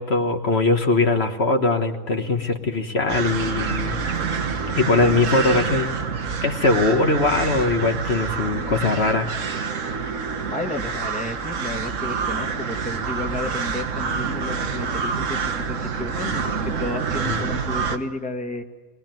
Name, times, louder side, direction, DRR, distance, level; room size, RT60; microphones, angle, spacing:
voice 1, 0.0-4.0 4.7-5.9 6.4-9.3 17.3-17.4, left 3 dB, 55° left, 4 dB, 1.6 m, -21 dB
sound 1, 3.1-18.0, right 5 dB, 70° right, 1.6 m, -27 dB
voice 2, 10.4-18.6, left 2 dB, 5° left, 3 dB, 1.5 m, -32 dB
22.0 x 20.5 x 9.2 m, 1.3 s
omnidirectional pair, 1.4 m